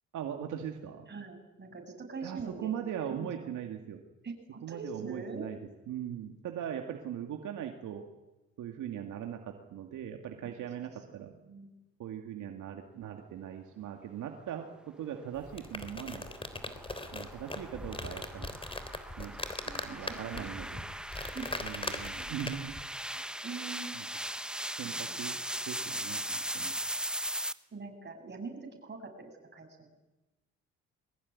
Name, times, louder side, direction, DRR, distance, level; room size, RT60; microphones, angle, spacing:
voice 1, 0.1-1.1 2.2-4.0 4.6-5.6 5.9-8.1 8.6-11.3 12.0-16.3 17.1-18.5 19.2-19.4 19.8-20.8 21.6-22.7 23.9-24.0 24.8-25.4 25.7-26.7, right 9 dB, 80° right, 3 dB, 2.4 m, -40 dB
voice 2, 1.1-3.3 4.2-5.5 10.9-11.7 19.6-20.7 21.2-21.5 22.2-22.4 23.4-24.0 24.8-25.3 27.7-29.9, right 4 dB, 35° right, 3 dB, 7.9 m, -44 dB
sound 1, 15.3-22.8, left 2 dB, 20° left, 3.4 m, -40 dB
sound 2, 15.5-27.5, right 1 dB, 5° right, 1.0 m, -39 dB
23.0 x 20.5 x 9.7 m, 1.0 s
cardioid pair, 90°, 30 cm